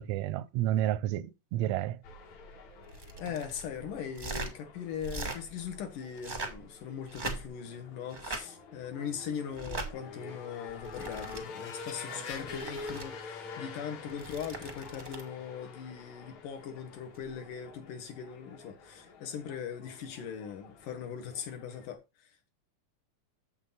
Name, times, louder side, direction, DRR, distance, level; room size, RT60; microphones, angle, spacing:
voice 1, 0.0-2.0, right 13 dB, 75° right, 1.6 m, -30 dB
sound 1, 2.0-21.9, left 4 dB, 60° left, 3.1 m, -47 dB
sound 2, 2.9-3.6 4.1-4.5 5.0-5.4 6.1-6.6 7.1-7.7 8.1-8.4 9.5-9.9 10.7-11.4 12.3-13.0 14.1-15.3 17.1-17.3, right 3 dB, 40° right, 0.6 m, -40 dB
voice 2, 3.2-22.5, left 8 dB, 80° left, 3.1 m, -40 dB
8.2 x 7.4 x 4.0 m
omnidirectional pair, 3.7 m